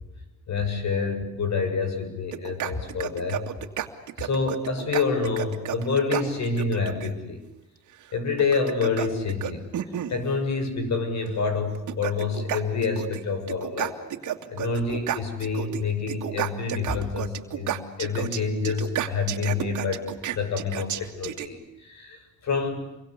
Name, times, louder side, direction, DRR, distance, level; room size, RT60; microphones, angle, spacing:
voice 1, 0.5-3.4 4.2-7.4 8.1-9.7 10.1-14.0 14.5-22.8, left 4 dB, 65° left, 8 dB, 7.3 m, -27 dB
sound 1, 2.3-7.1 8.4-10.2 11.3-11.4 11.7-13.2 13.5-15.8 16.1-21.5, right 10 dB, 75° right, 2.5 m, -31 dB
28.0 x 24.0 x 8.3 m, 0.97 s
cardioid pair, 90°, 30 cm